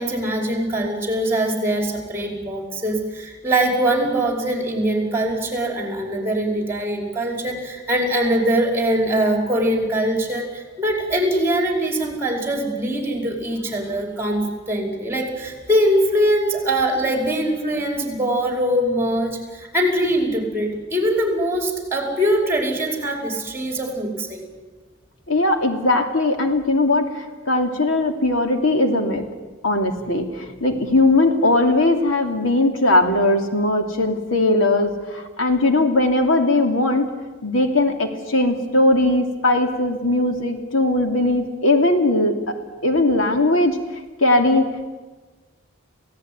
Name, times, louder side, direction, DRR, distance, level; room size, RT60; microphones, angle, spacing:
voice 1, 0.0-24.5, right 1 dB, 10° right, 2 dB, 5.2 m, -22 dB
voice 2, 25.3-29.3 29.6-37.1 37.4-43.8 44.2-44.9, left 2 dB, 85° left, 5 dB, 2.8 m, -19 dB
28.0 x 17.5 x 9.6 m, 1.3 s
head